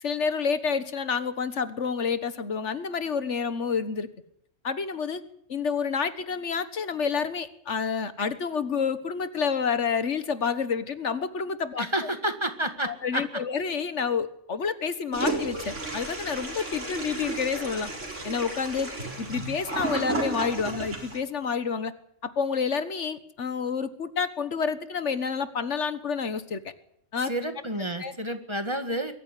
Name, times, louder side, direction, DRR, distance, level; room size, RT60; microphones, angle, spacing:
voice 1, 0.0-4.1 4.6-5.2 5.5-11.9 12.9-17.9 18.2-18.9 19.2-21.9 22.2-26.6 27.1-27.3 28.0-28.1, left 6 dB, 75° left, 13 dB, 1.7 m, -29 dB
voice 2, 11.8-13.2 27.2-29.1, right 1 dB, 25° right, 8 dB, 1.9 m, -30 dB
Toilet flush, 15.1-21.2, right 2 dB, 85° right, 4.7 m, -33 dB
22.5 x 14.0 x 10.0 m, 0.69 s
omnidirectional pair, 1.2 m